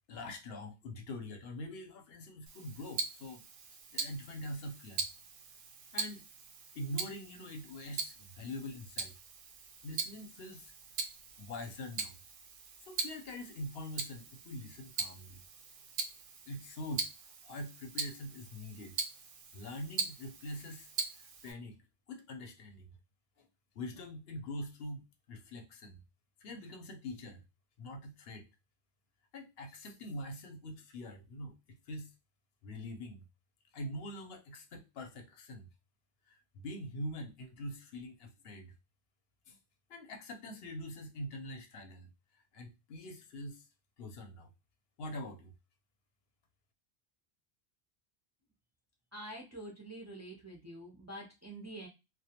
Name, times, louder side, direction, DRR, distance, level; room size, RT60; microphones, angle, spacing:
voice 1, 0.1-3.4 3.9-5.1 5.9-6.2 6.7-9.1 9.8-10.7 11.4-12.2 12.8-15.4 16.5-19.0 19.5-20.9 21.4-21.8 22.1-22.9 23.4-23.5 23.7-26.0 26.4-27.4 27.8-28.5 29.3-31.6 31.9-32.1 32.6-33.3 33.7-35.7 36.3-38.7 39.5-39.6 39.9-43.7 44.0-44.5 45.0-45.5, left 1 dB, 75° left, 0.8 m, -44 dB
Tick-tock, 2.5-21.5, right 5 dB, 60° right, 0.6 m, -42 dB
voice 2, 49.1-51.9, right 1 dB, 25° right, 0.4 m, -46 dB
2.2 x 2.2 x 2.7 m
omnidirectional pair, 1.1 m